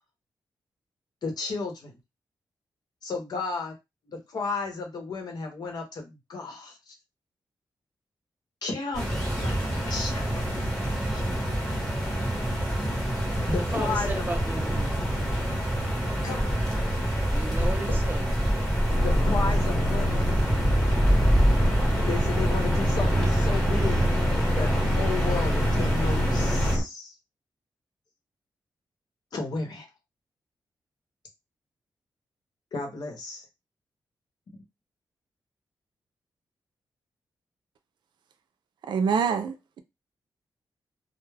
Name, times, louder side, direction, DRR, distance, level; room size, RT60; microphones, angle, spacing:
voice 1, 1.2-1.9 3.0-3.7 4.1-6.8 8.6-9.2 9.4-10.4 11.1-11.2 13.5-14.2 16.2-16.6 17.9-18.0 19.0-20.3 22.0-24.1 24.5-27.1 29.3-29.9 32.7-33.4, left 4 dB, 60° left, 0.9 m, -33 dB
sound 1, 8.9-26.8, equal, 5° left, 1.0 m, -27 dB
voice 2, 13.7-14.9 16.0-16.1 17.3-18.3 18.9-19.0, right 2 dB, 25° right, 0.5 m, -35 dB
sound 2, 18.9-26.8, equal, 30° left, 1.0 m, -26 dB
voice 3, 38.9-39.8, right 6 dB, 80° right, 0.4 m, -26 dB
2.3 x 2.0 x 3.2 m
wide cardioid pair, 135°, 8 cm